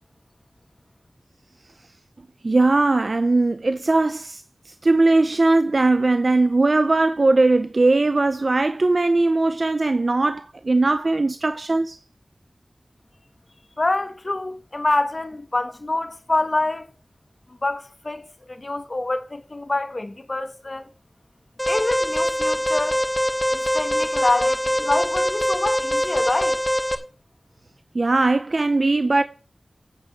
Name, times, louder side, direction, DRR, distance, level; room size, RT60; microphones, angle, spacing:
voice 1, 2.4-4.4 4.8-12.0 27.9-29.2, right 2 dB, 60° right, 0.7 m, -19 dB
voice 2, 13.8-16.9 17.6-20.9 21.7-23.0 23.5-26.6, left 2 dB, 50° left, 1.7 m, -26 dB
Alarm, 21.6-26.9, equal, 5° left, 1.8 m, -23 dB
9.7 x 6.5 x 7.5 m
wide cardioid pair, 45°, 0 cm